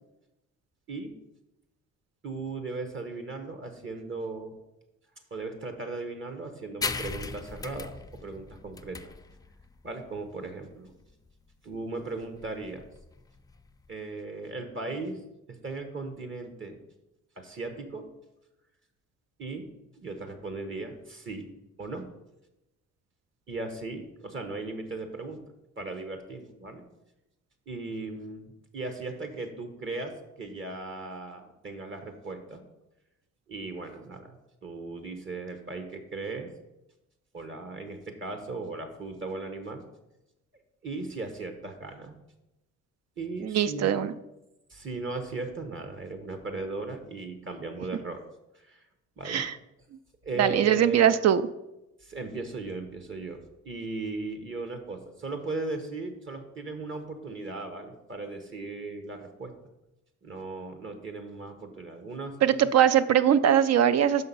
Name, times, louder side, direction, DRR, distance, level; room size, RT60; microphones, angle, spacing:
voice 1, 2.2-4.5 5.3-9.1 9.8-10.9 11.6-12.9 13.9-15.2 15.5-16.8 17.4-18.1 19.4-19.7 19.9-21.5 21.8-22.0 23.5-25.4 25.8-26.8 27.7-32.6 33.5-34.4 34.6-36.5 37.3-39.8 40.8-42.1 43.2-44.0 44.7-48.2 48.5-48.8 49.2-49.4 50.2-51.1 52.0-59.5 60.2-62.3, right 3 dB, 40° right, 7 dB, 1.1 m, -37 dB
sound 1, 6.8-13.9, left 4 dB, 15° left, 0.3 m, -39 dB
voice 2, 43.4-44.2 49.3-49.5 50.4-51.4 62.4-64.3, right 9 dB, 60° right, 13 dB, 0.5 m, -22 dB
5.9 x 5.6 x 5.5 m, 0.93 s
cardioid pair, 90°, 30 cm